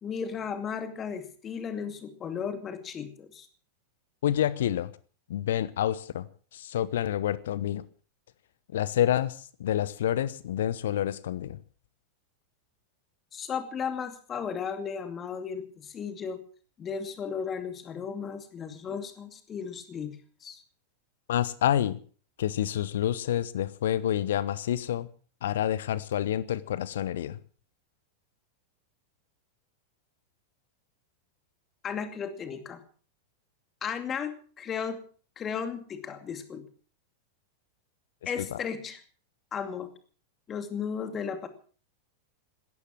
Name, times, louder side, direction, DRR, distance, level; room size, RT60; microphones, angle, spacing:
voice 1, 0.0-3.5 13.3-16.4 16.8-20.6 31.8-32.8 33.8-35.0 35.4-36.6 38.3-39.0 39.5-39.9 40.5-41.5, left 6 dB, 25° left, 2.5 m, -35 dB
voice 2, 4.2-4.9 5.3-7.9 8.7-11.6 21.3-22.0 22.4-25.1 25.4-27.4 38.2-38.6, left 11 dB, 60° left, 0.9 m, -28 dB
17.0 x 13.5 x 6.2 m
figure-of-eight pair, 90°, 0 cm